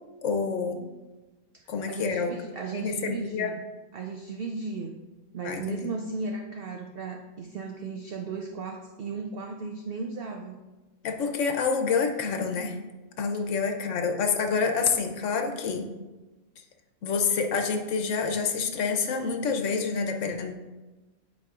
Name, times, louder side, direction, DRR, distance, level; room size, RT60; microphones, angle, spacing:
voice 1, 0.2-0.9 1.7-2.3 2.7-3.6 5.4-5.9 11.0-12.8 13.2-15.9 17.0-20.5, left 5 dB, 65° left, 5 dB, 1.0 m, -27 dB
voice 2, 1.5-3.6 3.9-5.0 5.3-10.6, right 4 dB, 70° right, 3 dB, 0.5 m, -36 dB
11.0 x 4.7 x 2.4 m, 1.2 s
omnidirectional pair, 1.5 m